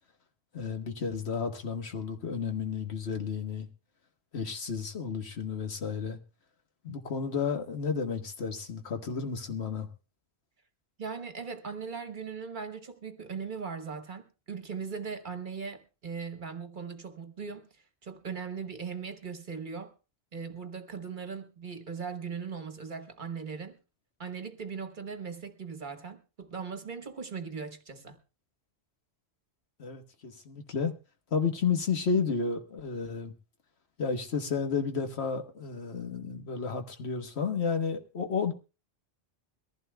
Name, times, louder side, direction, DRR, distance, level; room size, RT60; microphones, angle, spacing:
voice 1, 0.5-3.7 4.3-6.2 6.8-9.9 29.8-30.9 31.3-33.3 34.0-38.5, left 5 dB, 70° left, 1.5 m, -32 dB
voice 2, 11.0-19.9 20.3-23.8 24.2-28.2, right 5 dB, 50° right, 1.2 m, -39 dB
22.5 x 15.0 x 2.2 m
omnidirectional pair, 1.1 m